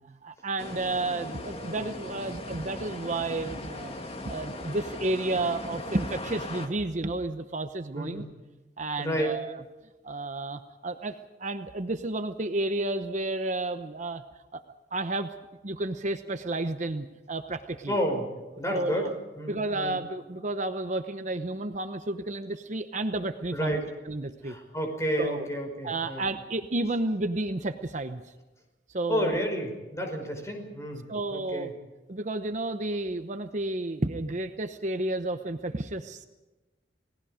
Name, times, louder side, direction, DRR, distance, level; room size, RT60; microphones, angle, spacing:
voice 1, 0.2-3.9 4.2-8.2 8.8-9.6 10.0-14.2 14.5-14.6 14.9-15.3 15.6-18.0 18.7-19.1 19.5-23.8 24.0-24.6 25.2-25.5 25.8-28.2 28.9-29.4 31.1-31.7 32.1-36.3, right 2 dB, 45° right, 8 dB, 0.9 m, -31 dB
sound 1, 0.6-6.7, left 2 dB, 35° left, 2.3 m, -39 dB
voice 2, 7.9-8.3 9.0-9.4 17.9-18.3 18.6-19.1 19.4-20.0 23.5-23.9 24.4-26.2 29.1-31.0 31.3-31.7, equal, 15° left, 3 dB, 5.4 m, -30 dB
30.0 x 18.5 x 5.1 m, 1.1 s
head